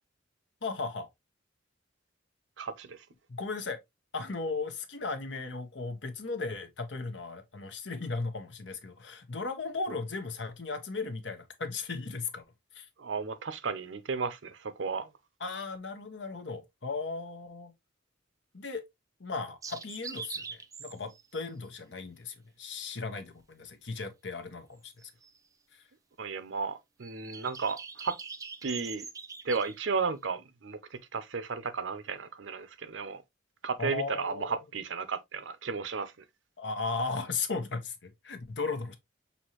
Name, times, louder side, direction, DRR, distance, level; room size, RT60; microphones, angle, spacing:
voice 1, 0.6-1.1 3.3-3.8 4.1-12.4 12.7-12.9 15.4-17.7 18.5-18.8 19.2-24.9 25.7-25.8 33.8-34.6 36.6-38.9, left 4 dB, 65° left, 1.0 m, -36 dB
voice 2, 2.6-3.0 9.9-10.0 13.0-15.1 26.2-28.2 28.6-29.0 29.4-33.2 33.6-36.1, right 5 dB, 70° right, 0.6 m, -34 dB
sound 1, 19.6-21.4 25.0-25.4 27.0-29.8, right 5 dB, 20° right, 0.4 m, -43 dB
6.2 x 2.8 x 2.9 m
head